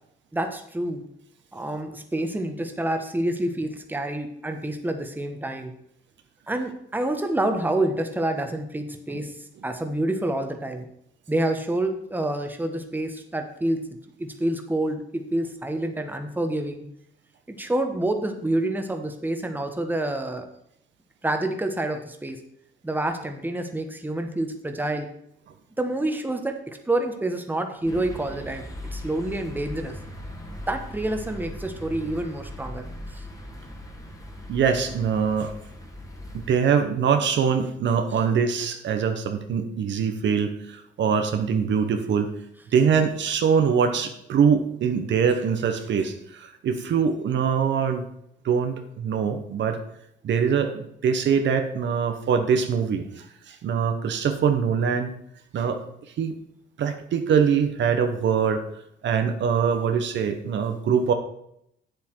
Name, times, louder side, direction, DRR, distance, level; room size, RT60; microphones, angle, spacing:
voice 1, 0.3-1.1 1.5-5.7 6.5-10.9 11.3-13.9 14.2-16.8 17.5-20.5 21.2-22.4 22.8-25.1 25.8-28.6 28.9-30.0 30.7-33.2, right 1 dB, 10° right, 5 dB, 1.2 m, -28 dB
sound 1, 27.9-36.5, left 1 dB, 15° left, 1.9 m, -39 dB
voice 2, 34.5-35.5 36.3-42.3 42.7-48.1 48.4-49.8 50.2-55.1 55.5-55.8 56.2-56.3 56.8-58.6 59.0-61.1, right 7 dB, 65° right, 6 dB, 1.1 m, -23 dB
8.5 x 7.6 x 4.6 m, 0.74 s
cardioid pair, 90°, 20 cm